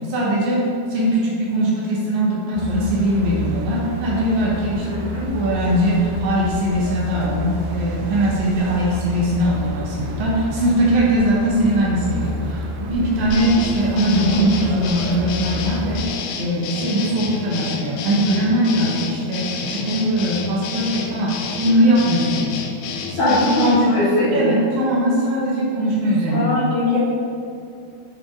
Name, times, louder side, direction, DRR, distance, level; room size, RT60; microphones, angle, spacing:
voice 1, 0.1-0.6 0.9-4.9 5.1-16.0 16.4-22.3 23.1-23.9 24.3-26.5 26.9-27.0, right 1 dB, 70° right, -5 dB, 2.4 m, -20 dB
sound 1, 2.6-16.1, left 1 dB, 85° right, 1.9 m, -30 dB
voice 2, 4.8-5.3 23.2-24.6 26.3-27.0, left 2 dB, 75° left, -9 dB, 1.9 m, -20 dB
sound 2, 13.3-23.8, left 6 dB, 90° left, 1.9 m, -30 dB
7.6 x 4.1 x 3.6 m, 2.6 s
omnidirectional pair, 4.6 m